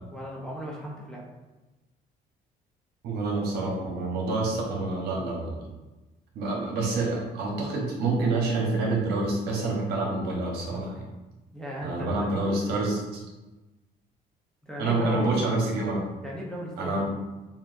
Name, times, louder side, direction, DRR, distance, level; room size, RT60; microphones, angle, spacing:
voice 1, 0.1-1.2 11.5-12.4 14.6-15.3 16.2-17.0, equal, 5° left, -4 dB, 0.9 m, -36 dB
voice 2, 3.0-5.5 6.3-11.0 11.8-13.2 14.8-16.0 16.8-17.1, right 2 dB, 70° right, -2 dB, 1.2 m, -27 dB
5.7 x 2.5 x 2.7 m, 1.1 s
cardioid pair, 110°, 17 cm